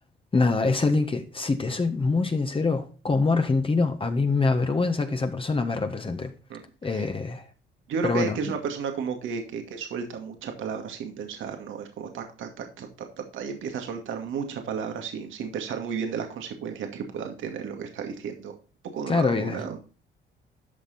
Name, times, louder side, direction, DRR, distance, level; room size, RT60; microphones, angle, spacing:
voice 1, 0.3-6.3 6.8-7.5 8.0-8.4 19.1-19.6, left 3 dB, 25° left, 1.4 m, -24 dB
voice 2, 6.5-7.1 7.9-18.5 18.9-19.8, right 6 dB, 80° right, 2.3 m, -33 dB
12.5 x 5.9 x 4.2 m
cardioid pair, 90°, 20 cm